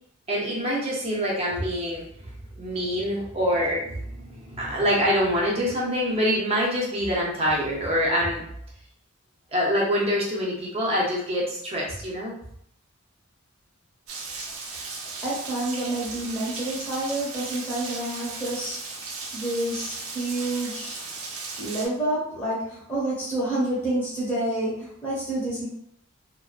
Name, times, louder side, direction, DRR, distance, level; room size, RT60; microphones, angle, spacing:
voice 1, 0.3-8.4 9.5-12.4, equal, 30° right, -4 dB, 0.5 m, -25 dB
Rain, 14.1-21.9, right 4 dB, 80° right, 0.5 m, -36 dB
voice 2, 15.2-19.0 19.3-21.0 21.6-25.7, right 1 dB, 10° left, -8 dB, 0.9 m, -28 dB
2.4 x 2.2 x 2.3 m, 0.69 s
head